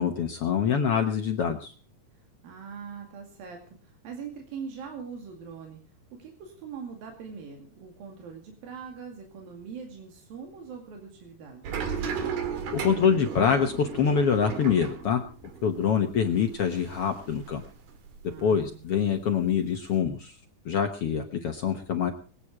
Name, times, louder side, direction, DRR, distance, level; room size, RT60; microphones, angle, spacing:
voice 1, 0.0-1.7 12.7-15.2 15.6-17.6 18.4-20.3 20.6-22.1, left 7 dB, 60° left, 6 dB, 1.5 m, -25 dB
voice 2, 2.4-5.8 6.2-11.8 18.3-18.8, right 6 dB, 90° right, 2 dB, 4.0 m, -42 dB
sound 1, 11.6-18.4 18.7-20.0, right 6 dB, 70° right, 3.5 m, -36 dB
23.0 x 8.8 x 4.8 m, 0.40 s
omnidirectional pair, 4.0 m